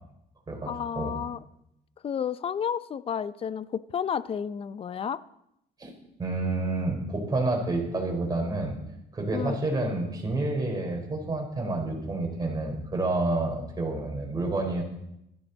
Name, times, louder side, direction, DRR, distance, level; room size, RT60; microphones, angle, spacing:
voice 1, 0.7-1.4 2.0-5.2 9.3-9.6, left 8 dB, 35° left, 16 dB, 0.6 m, -31 dB
voice 2, 6.2-8.8 9.1-14.8, right 2 dB, 25° right, 1 dB, 4.1 m, -29 dB
16.0 x 13.5 x 4.0 m, 0.81 s
cardioid pair, 110°, 17 cm